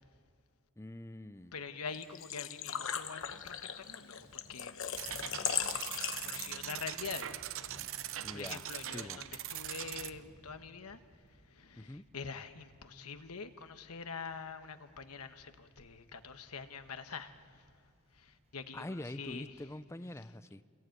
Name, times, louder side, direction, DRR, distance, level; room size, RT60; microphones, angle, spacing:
voice 1, 0.8-1.6 8.2-9.2 11.8-12.0 18.7-20.6, left 1 dB, 10° left, 13 dB, 0.6 m, -45 dB
Thunder / Rain, 1.3-19.7, equal, 30° right, 4.6 m, -62 dB
voice 2, 1.5-5.1 6.2-7.4 8.1-11.0 11.6-17.6 18.2-19.5, left 5 dB, 85° left, 8 dB, 1.3 m, -45 dB
Engine / Trickle dribble / Fill (with liquid), 1.9-6.8, left 9 dB, 60° left, 1.1 m, -38 dB
sound 1, 5.0-10.1, right 12 dB, 60° right, 0.7 m, -41 dB
28.0 x 21.0 x 9.2 m, 2.3 s
head